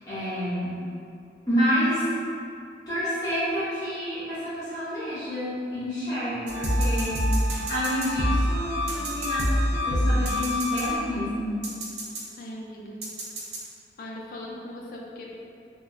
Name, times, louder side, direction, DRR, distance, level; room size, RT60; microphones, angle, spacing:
voice 1, 0.1-0.8 1.5-2.1 2.9-11.7, equal, 20° left, -14 dB, 0.7 m, -29 dB
sound 1, 6.5-11.3 11.6-12.2 13.0-13.6, equal, 70° right, 0.4 m, -26 dB
voice 2, 12.3-13.1 14.0-15.4, left 1 dB, 50° left, -2 dB, 0.3 m, -39 dB
2.2 x 2.0 x 3.5 m, 2.5 s
head